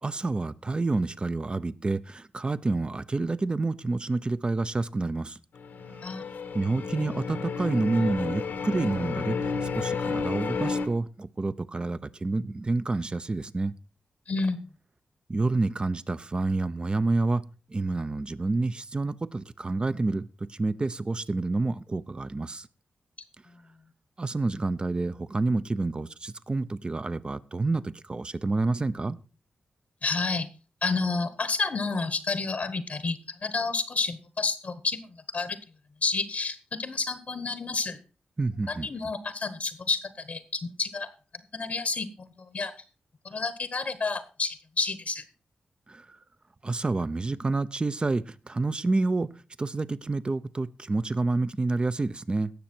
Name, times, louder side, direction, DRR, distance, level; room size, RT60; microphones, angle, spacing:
voice 1, 0.0-5.4 5.9-6.1 6.5-13.7 15.3-17.4 17.7-22.7 24.2-29.2 38.4-38.9 45.9-46.2 46.6-49.3 49.6-52.5, right 3 dB, 30° right, 0.7 m, -28 dB
sound 1, 5.5-10.9, left 5 dB, 85° left, 1.5 m, -31 dB
voice 2, 6.0-6.5 14.3-14.7 23.5-23.6 30.0-30.5 30.8-35.6 36.0-38.0 38.7-41.1 41.5-42.7 43.2-45.2, left 4 dB, 50° left, 1.1 m, -30 dB
17.5 x 6.5 x 4.4 m
cardioid pair, 75°, 3 cm